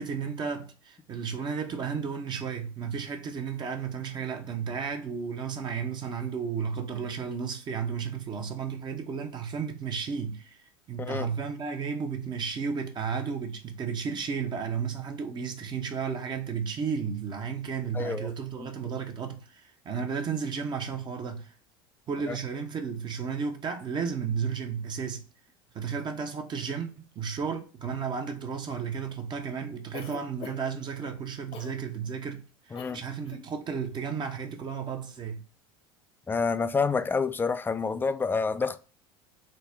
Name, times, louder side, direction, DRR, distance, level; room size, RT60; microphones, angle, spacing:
voice 1, 0.0-10.6 10.9-21.5 22.1-25.2 25.7-35.4, right 6 dB, 35° right, 0.8 m, -33 dB
voice 2, 11.0-11.3 17.9-18.3 18.6-18.7 22.3-22.4 32.7-33.0 36.3-38.8, left 5 dB, 15° left, 0.4 m, -28 dB
Cough, 29.9-30.8 31.5-31.8 32.7-33.0 33.2-33.5, left 6 dB, 50° left, 0.9 m, -43 dB
4.0 x 2.1 x 3.3 m
hypercardioid pair, 85°, 13 cm